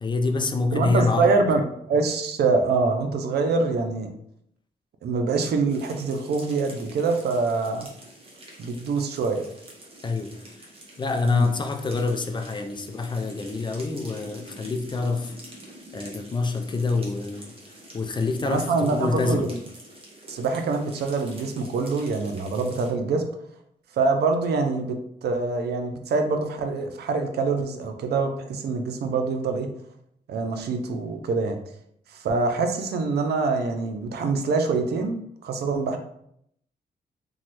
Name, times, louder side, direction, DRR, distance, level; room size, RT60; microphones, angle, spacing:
voice 1, 0.0-1.3 10.0-10.3 11.0-15.3 15.9-17.5 17.9-19.5, left 3 dB, 30° left, 5 dB, 0.4 m, -26 dB
voice 2, 0.7-4.1 5.0-7.9 8.6-9.4 11.2-11.5 18.4-19.6 20.3-23.2 24.0-29.7 30.3-31.6 32.1-36.0, right 4 dB, 80° right, 5 dB, 0.5 m, -25 dB
sound 1, 5.7-22.9, right 1 dB, 35° right, 1.0 m, -46 dB
3.0 x 2.2 x 3.0 m, 0.72 s
cardioid pair, 85°, 17 cm